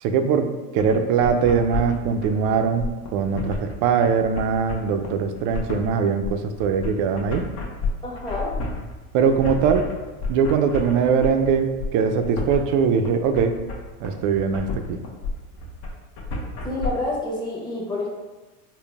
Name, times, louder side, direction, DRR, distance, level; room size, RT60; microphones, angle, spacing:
voice 1, 0.0-7.4 9.1-9.9 10.3-13.6 14.0-15.0, right 6 dB, 50° right, 7 dB, 0.4 m, -21 dB
sound 1, 0.8-16.9, left 3 dB, 60° left, 1.0 m, -31 dB
voice 2, 8.0-8.6 16.6-18.1, left 2 dB, 10° left, -5 dB, 1.0 m, -28 dB
3.9 x 2.1 x 3.4 m, 1.2 s
supercardioid pair, 105°, 44 cm